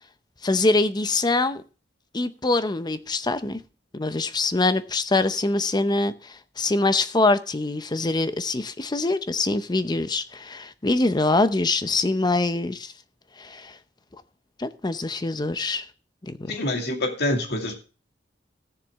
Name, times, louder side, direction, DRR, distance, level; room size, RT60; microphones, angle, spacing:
voice 1, 0.4-1.6 2.1-3.6 3.9-12.9 13.4-13.8 14.6-15.9 16.2-16.5, left 2 dB, 25° left, 0.6 m, -24 dB
voice 2, 16.5-17.7, left 1 dB, 60° left, 2.4 m, -26 dB
16.0 x 7.1 x 3.5 m
head